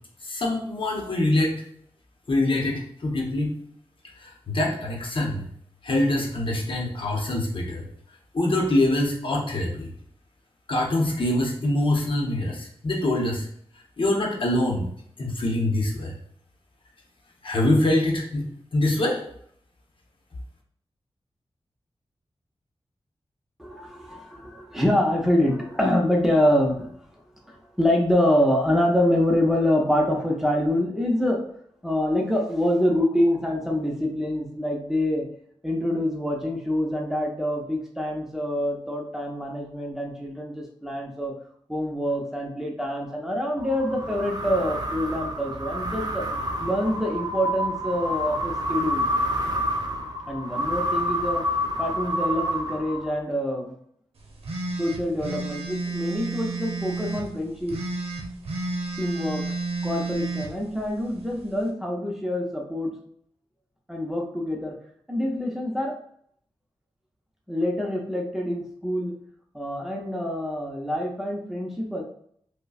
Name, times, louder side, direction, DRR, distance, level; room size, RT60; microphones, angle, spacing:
voice 1, 0.2-1.6 2.3-3.6 4.1-5.5 5.8-7.9 8.3-9.9 10.7-13.5 13.7-14.8 15.2-16.1 17.4-19.2, left 1 dB, 60° left, -1 dB, 0.8 m, -24 dB
voice 2, 23.6-26.9 27.5-31.4 31.8-35.2 35.6-41.3 41.7-46.3 46.6-49.0 50.3-51.4 51.8-53.7 54.8-57.8 59.0-59.5 59.8-62.9 63.9-64.8 65.1-65.9 67.5-69.2 69.5-72.0, left 1 dB, 5° right, -1 dB, 0.7 m, -25 dB
sound 1, 43.6-53.3, equal, 40° right, 0.5 m, -28 dB
sound 2, 54.4-57.3 57.7-60.5, right 3 dB, 85° right, 0.7 m, -31 dB
5.1 x 2.1 x 2.4 m, 0.65 s
wide cardioid pair, 95°, 10 cm